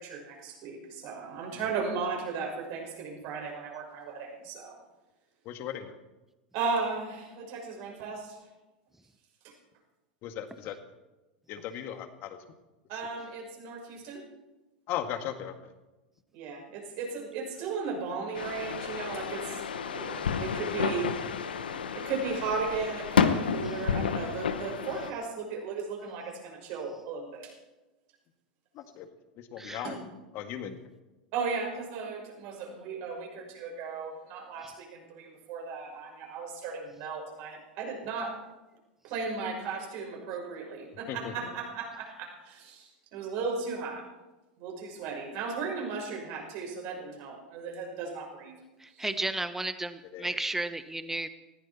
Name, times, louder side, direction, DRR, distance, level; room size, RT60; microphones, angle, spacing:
voice 1, 0.0-4.8 6.5-8.4 9.4-9.5 12.9-14.2 16.3-21.1 21.9-27.5 29.8-30.0 31.3-38.3 39.0-44.0 44.6-48.5 48.9-49.1, right 4 dB, 55° right, 0 dB, 5.9 m, -36 dB
voice 2, 5.5-6.0 10.2-10.8 11.5-12.4 14.9-15.5 28.8-29.1 29.5-29.9 30.3-30.7 41.1-41.3 50.1-50.5, left 10 dB, 50° left, 7 dB, 2.0 m, -37 dB
sound 1, 18.4-25.1, left 6 dB, 85° left, 1.1 m, -30 dB
voice 3, 49.0-51.3, right 2 dB, 5° right, 11 dB, 1.3 m, -33 dB
19.5 x 15.0 x 4.4 m, 1.1 s
hypercardioid pair, 95°, 5 cm